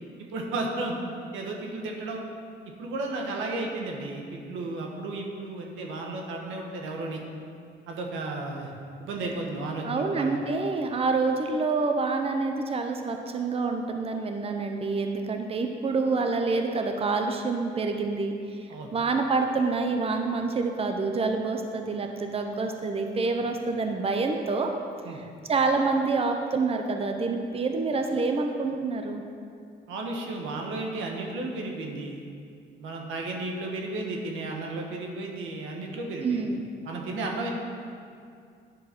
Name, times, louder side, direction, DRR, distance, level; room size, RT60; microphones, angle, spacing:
voice 1, 0.2-1.0 1.3-2.2 2.8-7.2 7.9-8.7 9.0-10.4 18.7-18.9 25.0-25.2 29.9-32.2 32.8-36.4 36.8-37.5, right 2 dB, 90° right, 0 dB, 1.2 m, -33 dB
voice 2, 9.8-24.7 25.1-29.2 36.2-36.7, right 3 dB, 30° right, 4 dB, 0.7 m, -27 dB
9.8 x 4.0 x 5.9 m, 2.4 s
cardioid pair, 90°, 20 cm